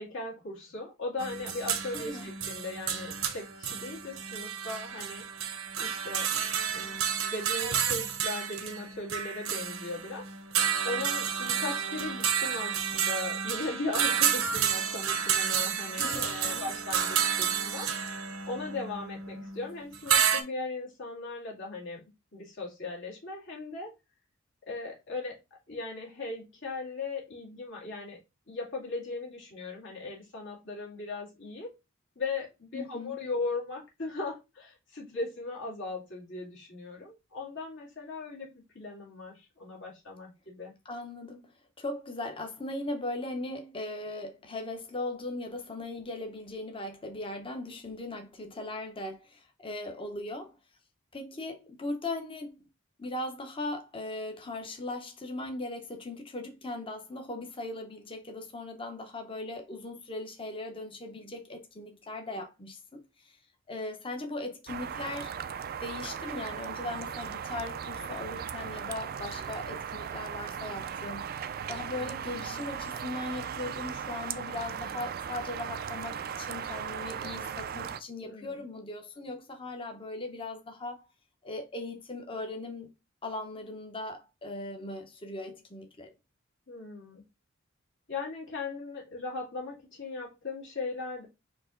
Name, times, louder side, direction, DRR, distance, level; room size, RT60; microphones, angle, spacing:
voice 1, 0.0-5.2 5.8-6.3 6.7-10.2 10.5-22.0 22.3-23.9 24.7-25.4 25.7-28.2 28.5-31.7 32.2-40.7 78.2-78.6 86.7-87.2 88.1-91.3, left 3 dB, 65° left, 2.2 m, -38 dB
sound 1, 1.2-20.4, right 8 dB, 75° right, 0.8 m, -30 dB
voice 2, 1.9-2.3 16.0-16.7 32.7-33.2 40.8-50.6 51.1-52.7 53.0-63.4 63.7-65.3 65.8-81.0 81.4-82.9 83.2-86.1, left 2 dB, 25° left, 0.9 m, -39 dB
sound 2, 64.7-78.0, right 8 dB, 45° right, 0.4 m, -37 dB
4.7 x 3.0 x 3.8 m
head